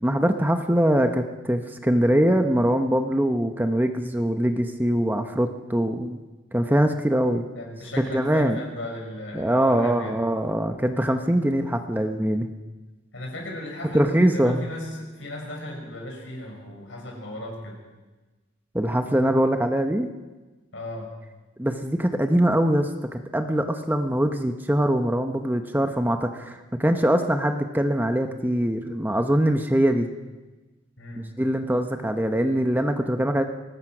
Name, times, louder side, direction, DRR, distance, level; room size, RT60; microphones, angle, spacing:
voice 1, 0.0-6.2 6.5-7.4 8.0-8.6 9.3-12.5 13.9-14.7 18.7-20.1 21.6-30.1 31.2-33.4, right 1 dB, 10° right, 6 dB, 1.0 m, -23 dB
voice 2, 7.5-10.2 13.1-17.8 20.7-21.1 31.0-31.3 33.0-33.2, left 1 dB, 65° left, 0 dB, 6.5 m, -36 dB
24.0 x 19.5 x 6.1 m, 1.2 s
head